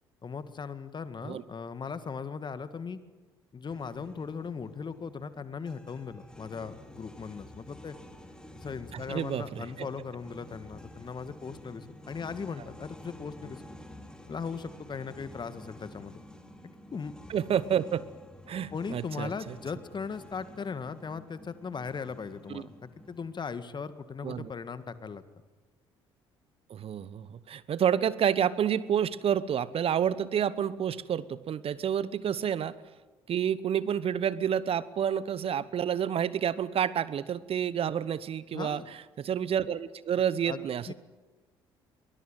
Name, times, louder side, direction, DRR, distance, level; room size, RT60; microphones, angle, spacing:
voice 1, 0.2-3.0 3.5-8.0 8.6-13.6 14.3-16.2 16.9-17.1 18.7-25.2 38.5-38.9 40.5-40.9, left 5 dB, 35° left, 12 dB, 1.9 m, -38 dB
sound 1, 3.6-23.4, left 1 dB, 5° left, 3.7 m, -50 dB
voice 2, 8.9-9.9 17.3-18.0 18.5-19.5 22.5-22.6 24.2-24.5 26.7-32.7 33.3-38.8 39.2-40.9, right 9 dB, 45° right, 17 dB, 1.0 m, -29 dB
23.0 x 20.0 x 9.1 m, 1.2 s
hypercardioid pair, 55°, 13 cm